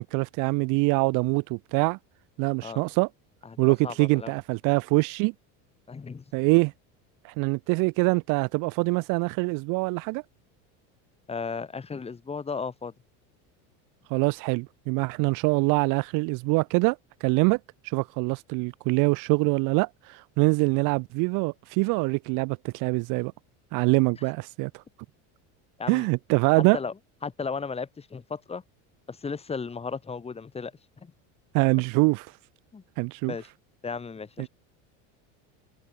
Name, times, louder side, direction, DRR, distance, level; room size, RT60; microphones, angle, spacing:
voice 1, 0.0-2.0 2.4-3.1 3.6-5.3 6.3-6.7 7.2-10.2 14.1-17.6 17.8-23.3 23.7-24.7 25.9-26.8 31.5-32.3 33.0-33.3 34.4-34.5, right 28 dB, 60° right, 1.7 m, -24 dB
voice 2, 3.4-4.3 5.9-6.2 11.3-12.9 25.8-26.1 26.7-26.9 27.2-28.6 29.1-30.7 31.0-31.1 32.7-32.8 33.3-33.5 33.8-34.5, left 5 dB, 15° left, 6.4 m, -35 dB
cardioid pair, 145°, 37 cm